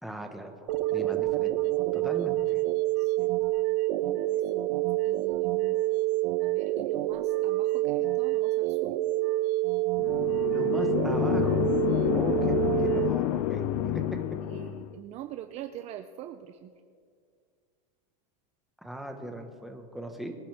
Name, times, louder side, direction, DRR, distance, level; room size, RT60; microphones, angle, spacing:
voice 1, 0.0-1.5 1.9-2.6 10.5-11.8 12.1-14.4 18.8-20.4, right 1 dB, ahead, 3 dB, 1.2 m, -39 dB
sound 1, 0.7-13.1, right 17 dB, 60° right, 0.9 m, -27 dB
voice 2, 5.0-5.8 6.4-8.6 14.5-16.7, right 12 dB, 30° right, 9 dB, 0.5 m, -43 dB
sound 2, 10.0-14.9, left 14 dB, 55° left, 0.5 m, -28 dB
23.5 x 10.0 x 3.5 m, 2.2 s
supercardioid pair, 145°, 21 cm